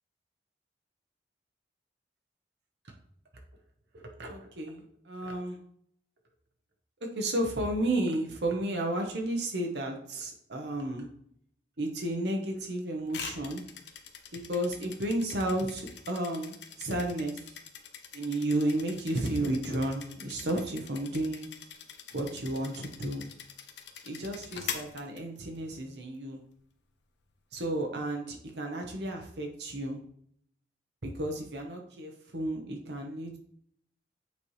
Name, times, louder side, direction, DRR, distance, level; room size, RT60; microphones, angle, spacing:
voice 1, 3.9-5.6 7.0-11.1 11.8-13.6 14.3-17.4 18.1-21.5 22.1-23.3 24.1-26.4 27.5-30.0 31.0-33.4, right 1 dB, 75° right, 2 dB, 1.0 m, -32 dB
sound 1, 13.1-25.8, left 7 dB, 85° left, 0.8 m, -44 dB
8.3 x 4.2 x 3.3 m, 0.66 s
head